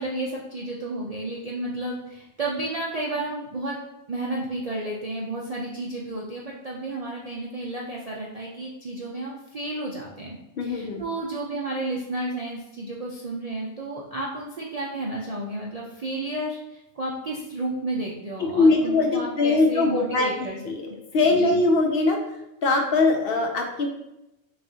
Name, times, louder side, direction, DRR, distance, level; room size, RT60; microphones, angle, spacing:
voice 1, 0.0-20.6 20.8-21.0 21.3-21.6, right 2 dB, 55° right, -3 dB, 0.4 m, -32 dB
voice 2, 10.6-11.0 18.5-20.3 20.6-20.9 21.1-22.2 22.6-23.9, left 3 dB, 60° left, 3 dB, 0.7 m, -21 dB
6.0 x 2.4 x 2.7 m, 0.89 s
omnidirectional pair, 1.2 m